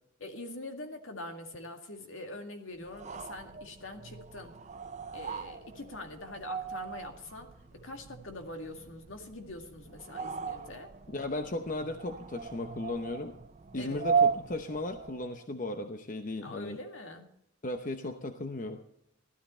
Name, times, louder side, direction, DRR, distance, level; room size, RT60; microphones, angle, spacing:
voice 1, 0.2-4.6 5.1-10.9 13.8-14.0 16.4-17.3, left 2 dB, 70° left, 4 dB, 2.1 m, -44 dB
sound 1, 2.8-15.4, right 6 dB, 35° right, 0.5 m, -36 dB
voice 2, 11.1-13.3 13.7-16.8 17.6-18.8, left 2 dB, 40° left, 6 dB, 0.8 m, -36 dB
16.5 x 13.0 x 4.3 m, 0.77 s
head